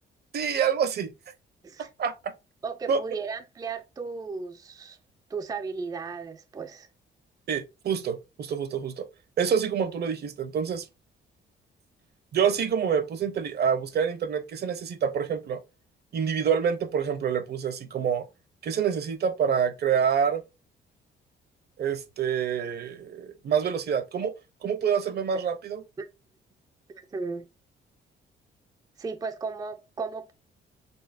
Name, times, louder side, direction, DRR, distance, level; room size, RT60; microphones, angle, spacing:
voice 1, 0.3-1.1 2.0-2.3 2.9-3.0 7.5-9.1 9.4-10.9 12.3-15.6 16.1-18.3 18.6-20.4 21.8-24.3 24.6-25.8, right 7 dB, 55° right, 0.7 m, -27 dB
voice 2, 2.6-5.0 5.3-6.9 26.0-26.1 27.1-27.5 29.0-30.3, right 4 dB, 20° right, 0.4 m, -35 dB
4.3 x 3.1 x 2.5 m
cardioid pair, 90°, 20 cm